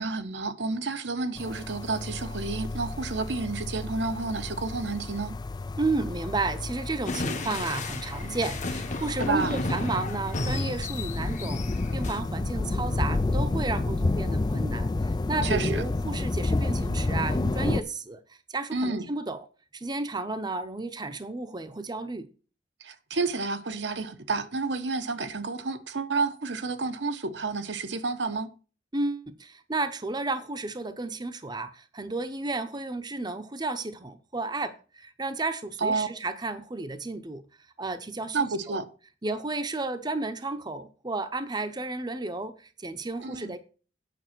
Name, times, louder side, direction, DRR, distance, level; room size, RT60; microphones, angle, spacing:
voice 1, 0.0-5.3 9.2-9.5 15.4-15.8 18.7-19.0 22.8-28.5 35.8-36.1 38.3-38.9 43.2-43.6, right 3 dB, 70° right, 1.1 m, -30 dB
sound 1, 1.4-17.8, left 2 dB, 25° left, 0.4 m, -30 dB
voice 2, 5.8-14.9 15.3-18.2 18.5-19.4 19.7-22.3 28.9-37.4 37.8-38.8 39.2-43.6, right 3 dB, 25° right, 0.8 m, -32 dB
sound 2, 7.0-12.2, left 2 dB, 40° left, 1.2 m, -33 dB
9.2 x 6.1 x 6.0 m
head